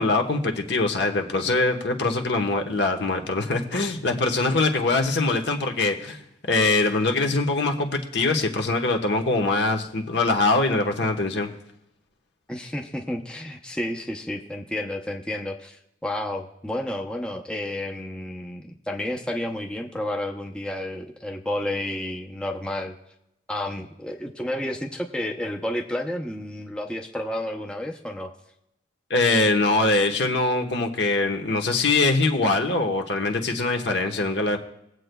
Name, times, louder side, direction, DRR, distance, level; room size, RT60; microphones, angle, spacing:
voice 1, 0.0-11.5 29.1-34.6, left 2 dB, 70° left, 3 dB, 1.1 m, -23 dB
voice 2, 12.5-23.0 23.5-28.3, left 1 dB, 5° left, 1 dB, 0.6 m, -31 dB
20.0 x 7.9 x 2.2 m, 0.84 s
head